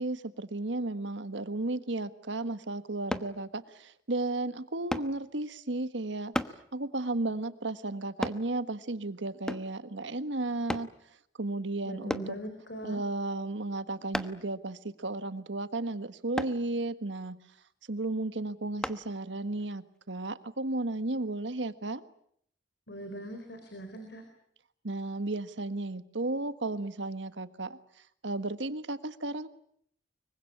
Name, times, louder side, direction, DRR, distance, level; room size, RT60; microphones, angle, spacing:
voice 1, 0.0-6.3 6.7-10.9 11.4-12.4 12.8-17.4 17.9-22.0 24.8-27.8 28.2-29.5, right 2 dB, 80° right, 12 dB, 1.5 m, -34 dB
sound 1, 3.1-3.3 4.9-5.1 6.3-6.6 8.2-8.4 9.5-9.8 10.7-10.9 12.1-12.3 14.1-14.5 16.4-16.6 18.8-19.0 19.6-19.7, equal, 5° left, 1.1 m, -33 dB
voice 2, 11.9-13.0 22.9-24.2, right 1 dB, 65° left, 7 dB, 4.4 m, -41 dB
25.0 x 23.5 x 8.6 m, 0.68 s
head